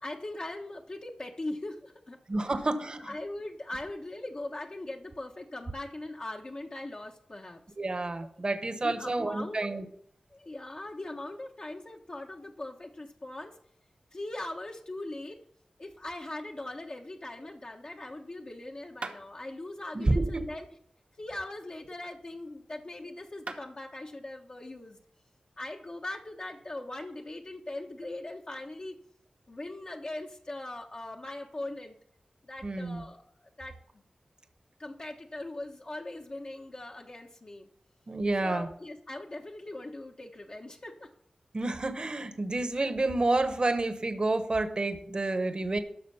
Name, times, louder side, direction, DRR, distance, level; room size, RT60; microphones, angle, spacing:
voice 1, 0.0-2.2 2.4-2.5 3.0-7.6 8.7-9.7 10.3-13.6 14.1-15.4 15.8-20.7 21.2-25.0 25.6-29.0 29.5-32.0 32.4-34.0 34.8-37.7 38.4-41.1, left 2 dB, 45° left, 0 dB, 1.2 m, -40 dB
voice 2, 2.3-3.1 7.8-9.8 19.9-20.4 32.6-33.0 38.1-38.7 41.5-45.8, right 2 dB, 45° right, 9 dB, 1.1 m, -29 dB
sound 1, 19.0-19.2 21.2-22.5 23.1-23.2 23.5-23.7, right 3 dB, 75° right, 1.3 m, -43 dB
12.5 x 6.3 x 5.6 m, 0.67 s
wide cardioid pair, 65°, 2 cm